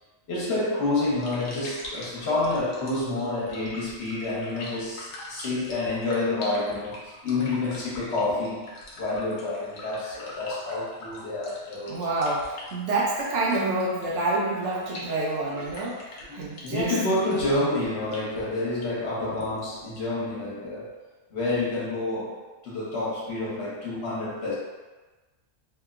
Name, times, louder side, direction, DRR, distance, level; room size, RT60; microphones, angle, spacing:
voice 1, 0.3-8.6 9.0-12.1 16.3-21.0 21.3-24.5, left 2 dB, 60° left, -7 dB, 1.1 m, -28 dB
sound 1, 1.2-20.2, left 1 dB, 85° left, 1.0 m, -44 dB
voice 2, 11.9-17.0, right 2 dB, 70° right, -4 dB, 0.8 m, -28 dB
2.8 x 2.1 x 2.4 m, 1.2 s
omnidirectional pair, 1.4 m